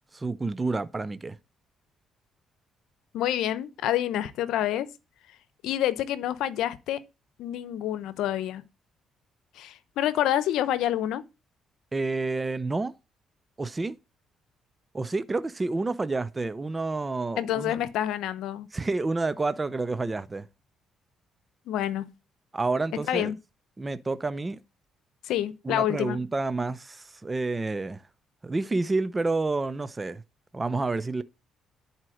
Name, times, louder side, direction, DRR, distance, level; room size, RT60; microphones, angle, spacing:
voice 1, 0.1-1.4 11.9-12.9 13.6-14.0 14.9-17.8 18.7-20.5 22.5-23.3 23.8-24.6 25.6-28.0 28.4-30.2 30.5-31.2, right 3 dB, 20° right, 0.8 m, -29 dB
voice 2, 3.1-4.9 5.6-7.0 7.4-8.6 9.6-11.2 17.4-18.7 21.7-22.1 23.1-23.4 25.2-26.2, left 12 dB, 85° left, 0.9 m, -27 dB
11.0 x 4.5 x 6.4 m
cardioid pair, 85°, 0 cm